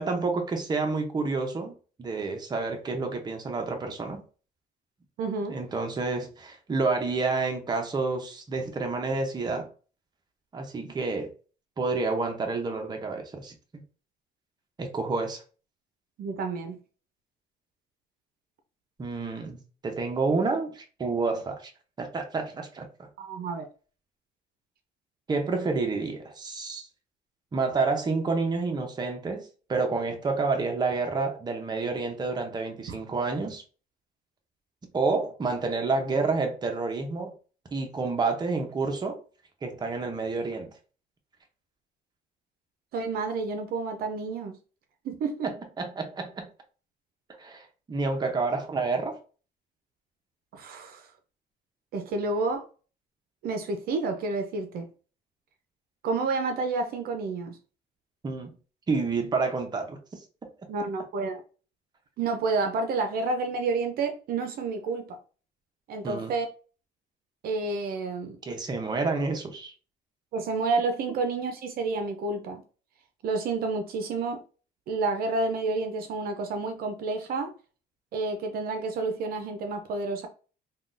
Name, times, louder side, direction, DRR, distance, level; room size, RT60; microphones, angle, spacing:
voice 1, 0.0-1.7 2.0-4.2 5.5-9.7 10.5-11.3 11.8-13.8 14.8-15.4 19.0-21.7 22.0-23.1 25.3-26.9 27.5-33.6 34.9-37.3 37.7-39.2 39.6-40.7 45.4-46.5 47.4-49.2 58.2-58.6 58.9-60.0 60.4-60.5 66.0-66.3 68.5-69.7, right 3 dB, 25° right, 0.7 m, -29 dB
voice 2, 5.2-5.6 16.2-16.8 23.2-23.6 42.9-44.6 45.0-45.5 50.5-51.1 51.9-52.6 53.4-54.9 56.0-57.6 60.7-61.4 62.2-65.2 65.9-66.5 67.4-68.4 70.3-72.6 73.2-74.4 74.9-77.5 78.1-80.3, right 3 dB, 60° right, 0.6 m, -29 dB
3.6 x 2.3 x 2.5 m
cardioid pair, 110°, 17 cm